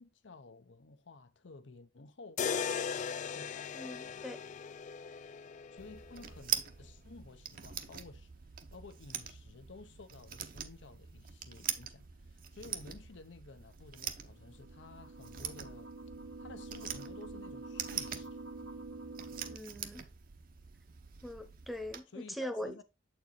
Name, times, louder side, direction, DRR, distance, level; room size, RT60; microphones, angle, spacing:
voice 1, 0.0-3.6 5.7-8.3 8.7-15.9 16.4-18.4 22.1-22.8, left 3 dB, 70° left, 0.7 m, -53 dB
sound 1, 2.4-6.4, left 6 dB, 40° left, 0.3 m, -38 dB
voice 2, 3.7-4.4 19.4-20.0 21.2-22.7, equal, ahead, 0.8 m, -41 dB
sound 2, 5.8-22.0, right 9 dB, 50° right, 0.8 m, -43 dB
sound 3, 14.3-19.6, right 3 dB, 80° right, 1.0 m, -47 dB
7.5 x 4.5 x 4.0 m
head